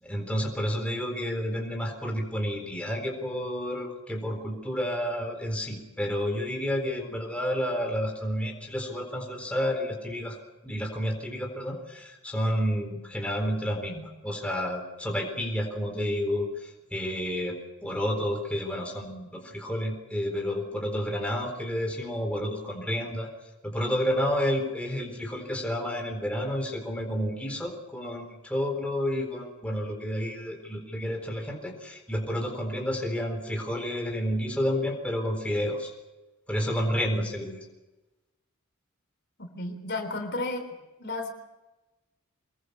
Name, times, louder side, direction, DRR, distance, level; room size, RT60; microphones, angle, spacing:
voice 1, 0.0-10.4 10.6-23.3 23.6-35.9 36.5-37.6, equal, 5° left, 1 dB, 4.1 m, -30 dB
voice 2, 39.4-40.7 41.0-41.3, left 2 dB, 50° left, 6 dB, 3.7 m, -33 dB
25.0 x 21.5 x 6.9 m, 1.1 s
head